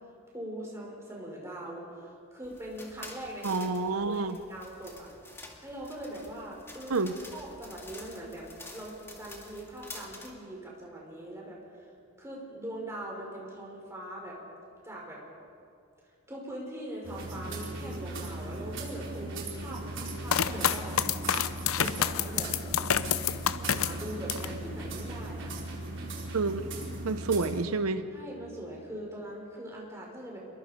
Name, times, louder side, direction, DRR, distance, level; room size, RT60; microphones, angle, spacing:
voice 1, 0.3-4.2 4.5-5.1 5.6-7.1 7.3-11.9 12.2-14.4 14.8-15.2 16.3-21.0 21.7-22.5 23.6-25.5 28.1-30.4, right 1 dB, 15° right, -3 dB, 5.2 m, -41 dB
sound 1, 2.4-10.3, left 2 dB, 10° left, 2.1 m, -48 dB
voice 2, 3.4-4.4 6.9-7.1 26.3-26.7 27.0-28.1, right 3 dB, 80° right, 10 dB, 0.8 m, -28 dB
sound 2, 17.0-27.6, right 2 dB, 55° right, 4.3 m, -38 dB
sound 3, 20.3-24.6 25.0-25.7, left 8 dB, 75° left, 0.7 m, -28 dB
27.0 x 22.5 x 5.2 m, 2.5 s
head